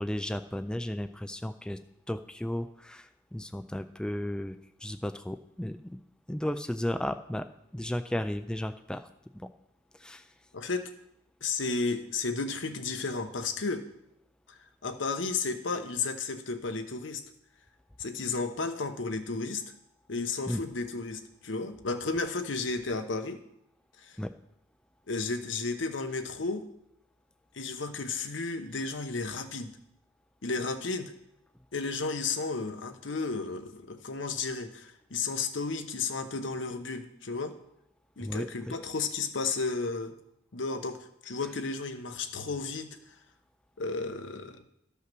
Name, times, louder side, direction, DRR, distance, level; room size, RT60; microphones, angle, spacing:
voice 1, 0.0-1.8 2.1-6.0 6.3-7.5 7.7-9.1 9.3-9.5 10.0-10.3 20.5-20.6 24.2-24.3 38.2-38.8, left 1 dB, 5° left, 9 dB, 0.3 m, -34 dB
voice 2, 10.5-10.9 11.4-13.9 14.8-17.2 18.0-19.6 20.1-23.4 24.0-24.2 25.1-26.7 27.5-29.8 30.4-31.1 31.7-37.5 38.2-40.1 40.5-43.0 43.8-44.6, left 4 dB, 80° left, 7 dB, 1.0 m, -33 dB
13.0 x 5.6 x 6.1 m, 0.79 s
head